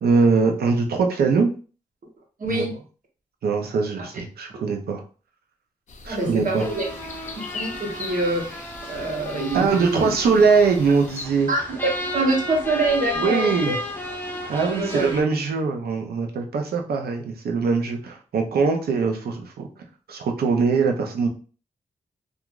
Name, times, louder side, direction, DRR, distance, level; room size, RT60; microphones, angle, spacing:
voice 1, 0.0-1.5 2.5-2.7 3.4-5.0 6.0-6.7 9.5-11.5 13.2-13.8 14.5-19.7 20.1-21.3, right 4 dB, 90° right, 4 dB, 0.5 m, -22 dB
voice 2, 2.4-2.7 4.0-4.1 6.1-6.8 7.4-10.1 11.5-13.8 14.6-15.1, right 2 dB, 60° right, 0 dB, 1.0 m, -25 dB
sound 1, 5.9-11.2, left 4 dB, 50° left, 0.5 m, -40 dB
sound 2, 6.6-15.2, left 1 dB, 15° left, 0.8 m, -33 dB
2.9 x 2.4 x 2.3 m, 0.37 s
cardioid pair, 70°, 16 cm